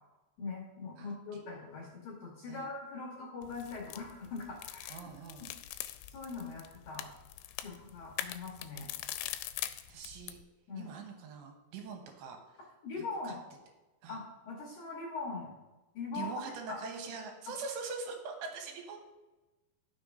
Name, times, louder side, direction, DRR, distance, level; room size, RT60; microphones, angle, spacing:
voice 1, 0.4-5.0 6.1-7.1 7.6-8.9 10.7-10.9 12.8-13.4 14.1-15.5 15.9-16.3 16.7-16.8, left 4 dB, 65° left, -3 dB, 2.1 m, -41 dB
voice 2, 1.0-1.4 2.5-2.7 4.9-5.5 9.9-10.4 10.8-12.6 13.0-13.3 14.0-14.2 16.1-19.0, right 5 dB, 80° right, 3 dB, 3.1 m, -43 dB
sound 1, 3.4-10.4, left 13 dB, 85° left, 2.8 m, -43 dB
14.5 x 6.1 x 2.6 m, 1.1 s
omnidirectional pair, 5.1 m